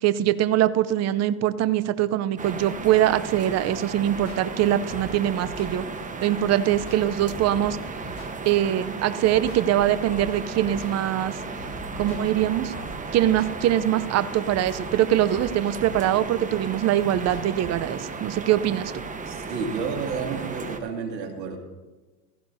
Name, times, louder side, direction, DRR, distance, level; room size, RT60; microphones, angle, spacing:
voice 1, 0.0-5.8 6.2-7.8 8.4-11.4 12.0-12.7 13.1-18.9, right 12 dB, 35° right, 14 dB, 0.7 m, -23 dB
sound 1, 2.4-20.8, right 4 dB, 15° right, 1.1 m, -35 dB
sound 2, 4.2-17.9, left 2 dB, 55° left, 2.8 m, -45 dB
voice 2, 19.3-21.6, right 5 dB, 80° right, 3 dB, 2.4 m, -31 dB
16.5 x 14.5 x 2.8 m, 1.2 s
hypercardioid pair, 95°, 49 cm